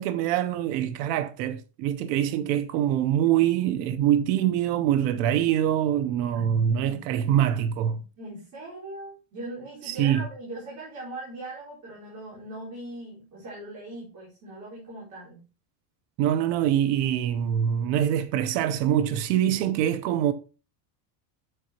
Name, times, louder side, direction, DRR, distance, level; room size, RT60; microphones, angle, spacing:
voice 1, 0.0-8.0 9.8-10.2 16.2-20.3, right 10 dB, 85° right, 0.8 m, -24 dB
voice 2, 2.1-2.5 6.3-7.0 8.2-15.4, right 1 dB, 35° right, 4.1 m, -40 dB
7.9 x 7.9 x 2.8 m
cardioid pair, 170°, 48 cm